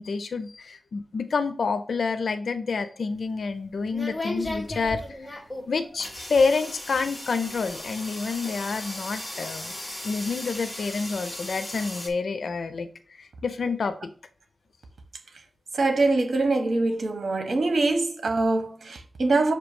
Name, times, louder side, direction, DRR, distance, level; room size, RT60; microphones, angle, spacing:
voice 1, 0.0-5.0 5.7-9.7 10.0-12.9 13.2-14.1, left 4 dB, 80° left, 0.5 m, -28 dB
sound 1, 3.1-12.1, left 1 dB, 20° left, 1.4 m, -36 dB
voice 2, 15.7-19.5, right 2 dB, 75° right, 1.3 m, -23 dB
6.6 x 3.0 x 5.0 m
wide cardioid pair, 90°, 0 cm